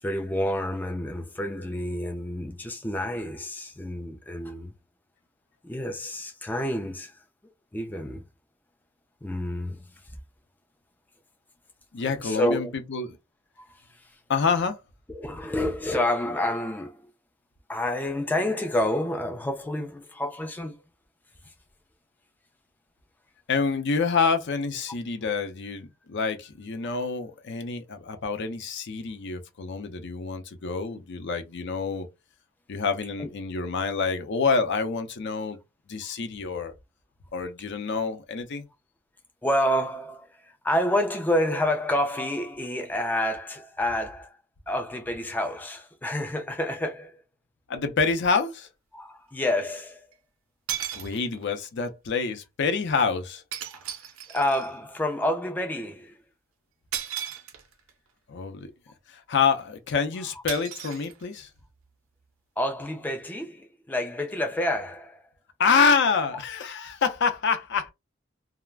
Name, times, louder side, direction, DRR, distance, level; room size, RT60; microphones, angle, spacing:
voice 1, 0.0-4.7 5.6-7.2 7.7-8.2 9.2-9.8 12.0-12.7 13.6-14.2 15.1-17.1 17.7-20.8 21.5-21.6 33.2-33.3 39.4-44.4 44.7-47.2 48.9-50.1 53.7-56.2 62.6-65.2, left 1 dB, 10° left, 0.3 m, -29 dB
voice 2, 11.9-13.2 14.3-14.8 23.5-32.1 32.7-35.6 35.9-36.7 37.3-38.7 47.7-48.7 50.9-53.4 58.3-58.7 59.1-61.5 65.6-67.9, left 5 dB, 60° left, 0.5 m, -27 dB
sound 1, 48.0-48.1 50.1-50.2 50.7-51.6 53.5-54.8 56.9-57.9 60.5-61.6, right 9 dB, 80° right, 0.5 m, -36 dB
2.3 x 2.0 x 3.2 m
head